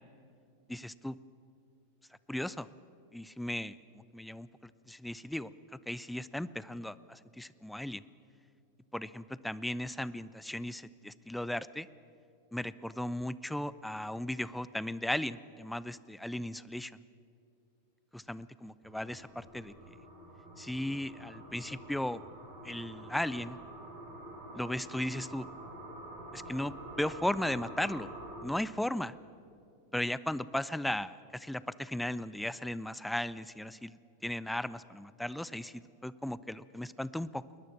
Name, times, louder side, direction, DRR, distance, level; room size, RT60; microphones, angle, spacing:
voice 1, 0.7-1.2 2.3-2.7 3.1-8.0 8.9-11.9 12.5-16.9 18.1-19.7 20.6-22.2 22.6-23.6 24.5-25.5 26.3-28.1 28.4-29.1 29.9-37.4, left 1 dB, 5° left, 18 dB, 0.5 m, -36 dB
sound 1, 18.8-28.4, right 1 dB, 35° right, 7.9 m, -47 dB
21.5 x 20.0 x 7.3 m, 2.5 s
figure-of-eight pair, 90°, 0 cm